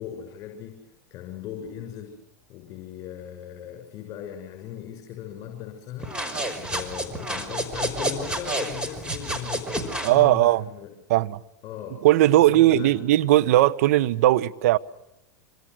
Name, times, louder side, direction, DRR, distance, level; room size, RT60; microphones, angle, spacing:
voice 1, 0.0-2.2 2.5-9.7 10.1-10.9 11.6-12.0 12.4-12.9, left 10 dB, 40° left, 6.7 m, -38 dB
sound 1, 6.0-10.2, right 1 dB, 10° right, 5.4 m, -30 dB
voice 2, 10.0-10.7 11.1-11.4 12.0-14.8, right 15 dB, 65° right, 1.2 m, -18 dB
26.5 x 26.0 x 6.3 m
hypercardioid pair, 100°, 9 cm